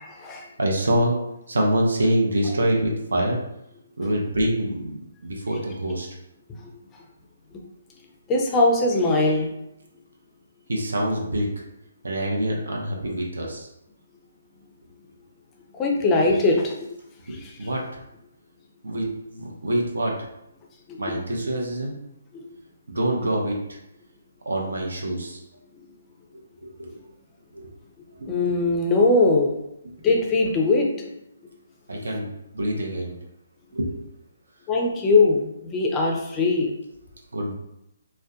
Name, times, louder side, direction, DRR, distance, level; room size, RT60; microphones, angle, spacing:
voice 1, 0.6-1.2 1.5-3.4 4.0-6.1 10.7-11.5 12.0-13.7 17.3-17.8 18.8-20.2 21.0-22.0 22.9-23.6 24.5-25.4 26.6-27.0 27.5-27.7 28.2-28.3 31.9-33.2 33.7-33.9 37.3-37.5, right 1 dB, 80° right, -1 dB, 0.5 m, -25 dB
voice 2, 8.3-9.5 15.8-16.7 17.4-17.5 20.9-21.0 28.3-29.6 30.0-31.0 34.7-36.7, left 3 dB, 15° left, 1 dB, 0.4 m, -20 dB
2.5 x 2.1 x 2.3 m, 0.83 s
hypercardioid pair, 150°, 0 cm